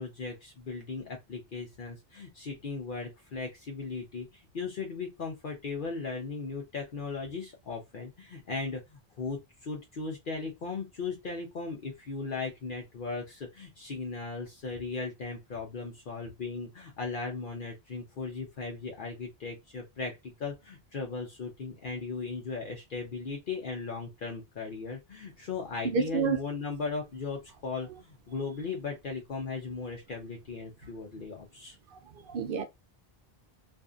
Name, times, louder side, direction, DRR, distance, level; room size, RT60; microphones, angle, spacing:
voice 1, 0.0-31.8, left 4 dB, 60° left, 0.8 m, -37 dB
voice 2, 25.8-26.4 31.9-32.6, right 5 dB, 65° right, 0.7 m, -30 dB
2.6 x 2.6 x 2.3 m
omnidirectional pair, 1.0 m